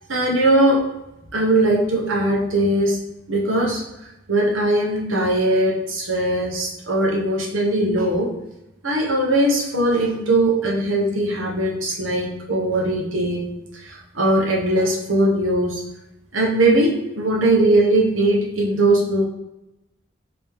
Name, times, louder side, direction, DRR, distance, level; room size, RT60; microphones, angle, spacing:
voice 1, 0.1-0.8 1.3-3.0 3.3-3.8 4.3-8.3 8.8-15.8 16.3-19.2, right 1 dB, 85° right, -2 dB, 1.0 m, -20 dB
3.5 x 3.0 x 3.4 m, 0.92 s
head